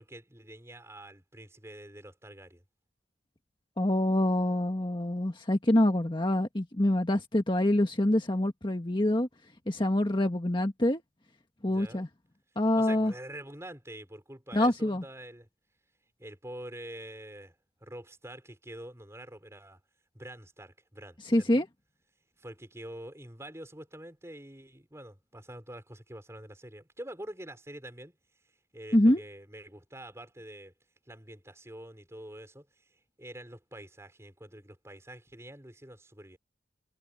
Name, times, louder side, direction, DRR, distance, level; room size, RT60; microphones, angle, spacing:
voice 1, 0.0-2.6 11.7-12.0 12.7-15.5 16.2-17.5 17.8-19.8 20.1-21.7 22.4-28.1 28.7-30.7 31.1-32.7 33.2-36.4, right 1 dB, 15° right, 5.2 m, -46 dB
voice 2, 3.8-9.3 9.7-11.0 11.6-12.1 12.5-13.1 14.5-15.0 21.2-21.7 28.9-29.2, left 1 dB, 25° left, 1.5 m, -25 dB
head